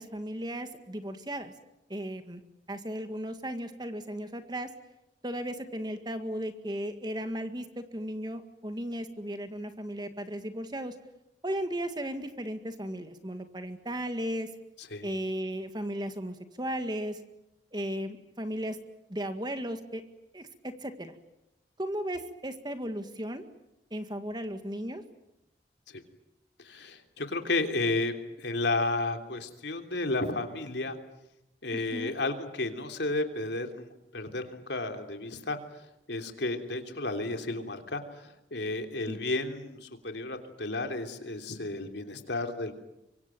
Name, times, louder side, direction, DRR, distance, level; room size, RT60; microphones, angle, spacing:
voice 1, 0.0-1.5 1.9-2.4 2.7-4.7 5.2-11.0 11.4-14.5 15.0-17.2 17.7-18.8 19.1-20.0 20.3-21.1 21.8-23.4 23.9-25.0 31.7-32.1 39.1-39.2, equal, 25° right, 8 dB, 1.9 m, -35 dB
voice 2, 26.6-31.0 31.6-42.7, left 2 dB, 80° left, 5 dB, 3.3 m, -33 dB
25.0 x 24.0 x 9.2 m, 0.89 s
head